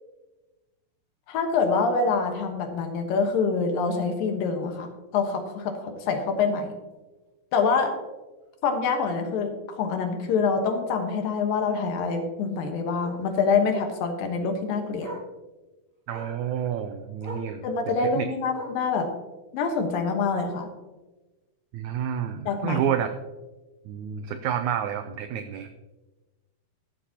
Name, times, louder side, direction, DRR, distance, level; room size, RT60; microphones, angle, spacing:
voice 1, 1.3-4.9 5.1-6.7 7.5-7.9 8.6-15.1 17.6-19.1 19.5-20.7 22.5-22.8, left 5 dB, 80° left, 4 dB, 2.9 m, -25 dB
Bark, 5.5-5.6 6.0-6.2 6.5-6.6 6.9-7.0 8.4-8.5 11.0-11.1 11.9-12.2 13.0-13.3 14.5-14.6 15.0-15.3 16.1-16.4 17.2-17.5 18.5-18.9 19.9-20.0, equal, 25° right, 2.2 m, -40 dB
voice 2, 16.1-17.7 18.1-18.2 21.7-23.1 23.9-25.7, right 9 dB, 85° right, 9 dB, 1.7 m, -29 dB
14.0 x 11.5 x 2.9 m, 1.1 s
omnidirectional pair, 4.0 m